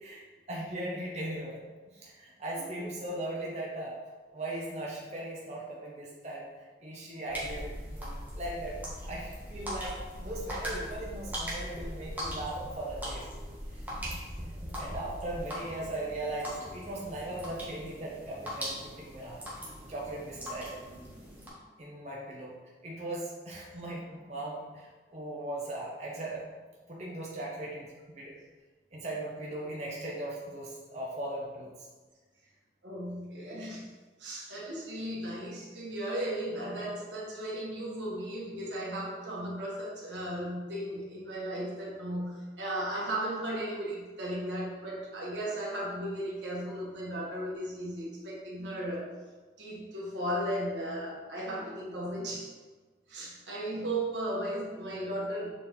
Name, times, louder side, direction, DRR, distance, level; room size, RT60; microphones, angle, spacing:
voice 1, 0.5-1.6 1.9-4.0 4.3-6.5 6.8-8.8 9.0-13.3 14.7-19.4 19.9-20.8 21.8-22.5 22.8-26.5 26.9-28.4 28.9-31.7, right 1 dB, 40° right, -4 dB, 0.8 m, -38 dB
sound 1, 7.3-21.5, equal, 10° right, 1.2 m, -40 dB
voice 2, 32.8-33.9 34.2-49.1 49.6-52.5 53.1-55.5, right 1 dB, 90° right, -4 dB, 1.7 m, -35 dB
6.8 x 4.1 x 3.7 m, 1.3 s
head